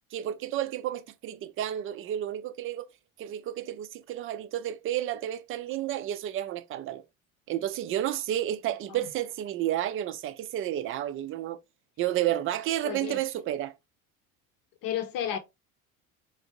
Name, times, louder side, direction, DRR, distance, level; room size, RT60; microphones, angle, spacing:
voice 1, 0.1-2.9 3.2-7.0 7.5-11.6 12.0-13.7, right 12 dB, 30° right, 0.4 m, -31 dB
voice 2, 12.8-13.2 14.8-15.4, left 10 dB, 50° left, 0.8 m, -31 dB
3.4 x 2.6 x 2.8 m
hypercardioid pair, 80°, 42 cm